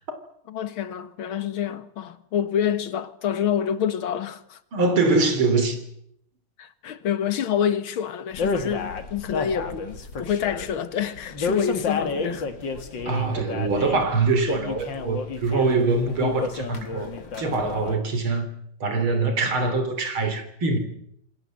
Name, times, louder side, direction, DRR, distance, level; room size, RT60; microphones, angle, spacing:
voice 1, 0.5-4.6 6.6-9.9 10.2-12.5, left 8 dB, 80° left, 2.2 m, -27 dB
voice 2, 4.7-5.8 13.1-18.5 18.8-20.8, right 3 dB, 85° right, 4.1 m, -23 dB
sound 1, 8.3-18.0, left 4 dB, 65° left, 2.7 m, -31 dB
27.5 x 20.0 x 7.8 m
omnidirectional pair, 2.2 m